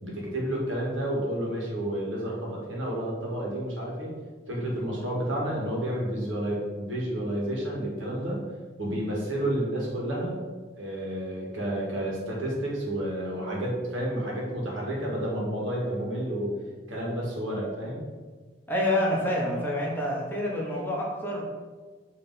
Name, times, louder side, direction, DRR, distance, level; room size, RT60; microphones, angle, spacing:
voice 1, 0.0-4.1 4.5-8.4 8.8-10.4 10.7-16.5 16.9-18.0, right 1 dB, 80° right, -3 dB, 1.8 m, -30 dB
voice 2, 18.7-21.4, left 1 dB, 10° left, -3 dB, 0.9 m, -27 dB
7.4 x 3.3 x 4.0 m, 1.4 s
head